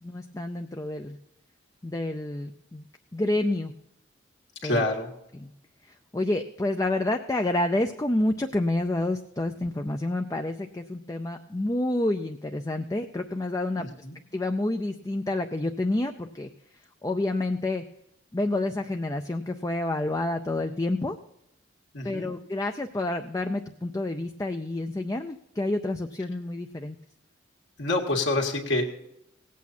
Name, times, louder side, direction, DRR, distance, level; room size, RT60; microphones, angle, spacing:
voice 1, 0.0-1.2 1.8-2.9 3.1-3.7 4.6-4.8 5.4-5.5 5.9-13.9 14.3-16.5 17.0-17.8 18.3-21.2 22.0-27.0, left 2 dB, 15° left, 5 dB, 0.4 m, -29 dB
voice 2, 4.6-5.1 13.8-14.2 21.9-22.3 27.8-28.8, left 2 dB, 70° left, 0 dB, 1.9 m, -27 dB
18.0 x 8.3 x 4.3 m, 0.83 s
head